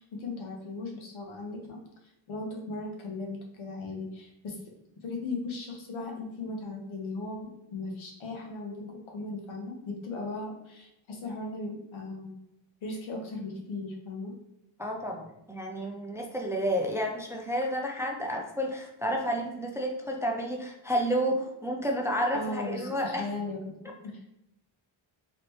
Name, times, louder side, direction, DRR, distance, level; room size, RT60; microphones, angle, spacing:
voice 1, 0.0-1.8 2.3-4.6 5.0-12.4 12.8-14.3 22.3-24.2, left 2 dB, 85° left, 1 dB, 1.1 m, -37 dB
voice 2, 14.8-23.3, equal, 5° right, 1 dB, 0.3 m, -30 dB
4.1 x 3.2 x 3.0 m, 0.86 s
wide cardioid pair, 130°, 46 cm